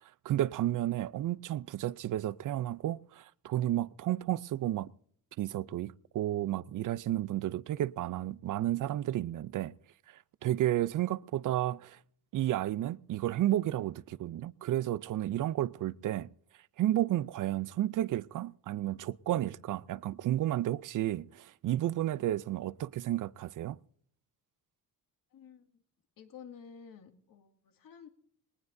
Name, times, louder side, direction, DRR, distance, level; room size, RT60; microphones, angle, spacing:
voice 1, 0.2-4.9 5.4-9.7 10.4-12.0 12.3-16.3 16.8-23.8, right 13 dB, 60° right, 0.5 m, -32 dB
voice 2, 25.3-25.7 26.2-28.1, left 7 dB, 65° left, 2.2 m, -51 dB
21.0 x 19.5 x 2.6 m
cardioid pair, 140°, 36 cm